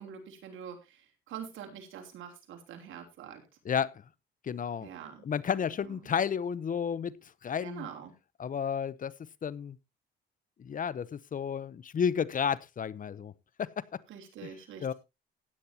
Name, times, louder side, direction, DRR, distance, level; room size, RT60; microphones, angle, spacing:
voice 1, 0.0-3.4 4.8-5.2 5.8-6.1 7.6-8.1 14.1-14.9, right 8 dB, 80° right, 3.2 m, -45 dB
voice 2, 3.6-4.0 4.4-4.9 5.2-7.9 8.4-9.1 9.4-9.8 10.6-13.3 13.6-14.0 14.8-14.9, left 7 dB, 40° left, 0.7 m, -32 dB
16.0 x 9.7 x 2.8 m
cardioid pair, 90°, 20 cm